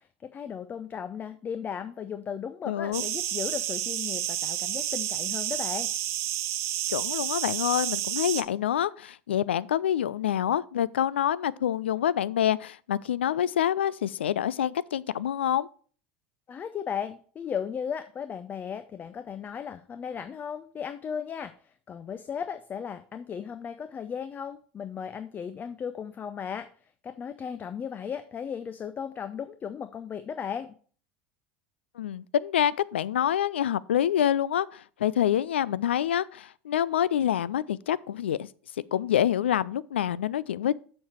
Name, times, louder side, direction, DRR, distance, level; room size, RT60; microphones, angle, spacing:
voice 1, 0.0-5.9 16.5-26.7 27.0-30.7, left 7 dB, 30° left, 0.6 m, -36 dB
voice 2, 2.7-3.0 6.9-15.7 32.0-38.5 38.9-40.7, left 10 dB, 80° left, 0.4 m, -26 dB
sound 1, 2.9-8.4, right 12 dB, 50° right, 0.8 m, -30 dB
7.1 x 6.5 x 4.4 m
hypercardioid pair, 80°, 6 cm